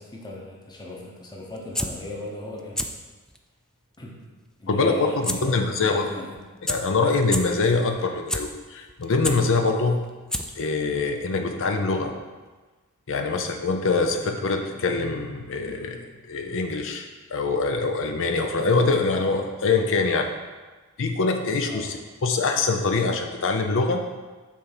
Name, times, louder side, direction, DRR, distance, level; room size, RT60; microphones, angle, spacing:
voice 1, 0.0-2.9 4.0-4.3 4.6-6.4 13.2-13.4 21.7-22.0, left 2 dB, 20° left, -2 dB, 1.0 m, -38 dB
sound 1, 1.5-1.9 2.6-2.9 3.3-3.4 5.2-5.4 5.7-5.8 6.4-6.5 6.7-6.8 7.2-7.4 8.0-8.4 8.9-9.4 10.0-10.1 10.3-10.7 11.0-11.1, left 1 dB, 5° left, 0.3 m, -27 dB
voice 2, 4.7-6.0 6.7-10.0 10.6-12.1 13.1-16.0 16.3-20.3 21.0-24.0, left 3 dB, 60° left, 5 dB, 0.6 m, -24 dB
6.1 x 4.1 x 6.0 m, 1.3 s
head